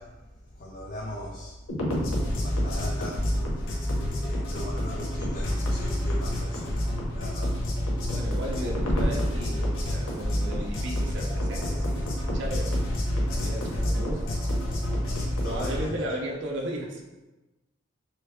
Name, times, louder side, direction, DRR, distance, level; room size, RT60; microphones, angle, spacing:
voice 1, 0.0-1.6 2.4-7.6 8.6-8.7 9.4-9.7 15.1-16.0, left 1 dB, 40° left, -3 dB, 0.4 m, -40 dB
sound 1, 1.7-15.8, equal, 80° left, 0.6 m, -28 dB
voice 2, 8.1-12.8 13.3-14.3 15.4-17.1, right 1 dB, 60° right, -1 dB, 0.5 m, -35 dB
3.1 x 2.3 x 3.5 m, 1.1 s
head